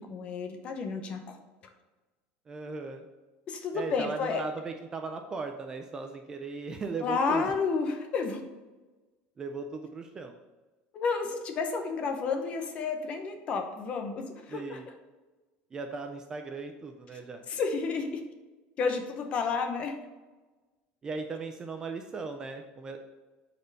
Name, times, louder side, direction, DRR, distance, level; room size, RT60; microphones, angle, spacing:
voice 1, 0.1-1.4 3.5-4.4 7.0-8.4 10.9-14.8 17.5-18.2 18.8-20.0, left 5 dB, 30° left, 5 dB, 0.8 m, -31 dB
voice 2, 2.5-3.1 3.7-7.5 9.4-10.4 14.5-14.9 15.7-17.4 21.0-23.0, right 4 dB, 15° right, 5 dB, 0.4 m, -37 dB
8.3 x 4.4 x 4.0 m, 1.2 s
cardioid pair, 180°, 4 cm